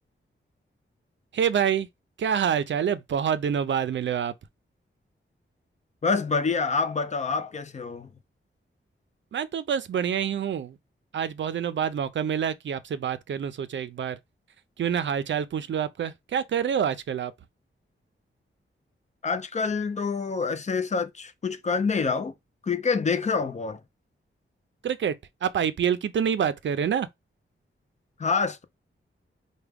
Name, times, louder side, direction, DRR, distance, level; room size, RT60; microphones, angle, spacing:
voice 1, 1.3-1.9 2.2-4.3 9.3-10.8 11.1-14.2 14.8-17.3 24.8-25.2 25.4-27.1, right 8 dB, 60° right, 0.5 m, -27 dB
voice 2, 6.0-8.1 19.2-22.3 22.6-23.8 28.2-28.6, left 4 dB, 35° left, 0.5 m, -27 dB
4.7 x 2.2 x 3.4 m
wide cardioid pair, 160°, 21 cm